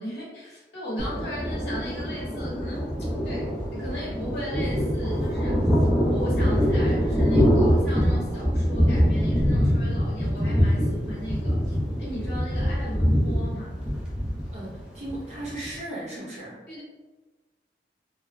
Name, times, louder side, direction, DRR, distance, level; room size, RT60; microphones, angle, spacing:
voice 1, 0.0-5.7 6.1-13.8 16.7-16.8, equal, 70° left, -7 dB, 1.0 m, -37 dB
Thunder, 1.0-15.8, equal, 5° right, 0.4 m, -24 dB
voice 2, 14.5-16.6, right 1 dB, 40° right, -6 dB, 0.8 m, -36 dB
2.4 x 2.0 x 3.1 m, 1.2 s
head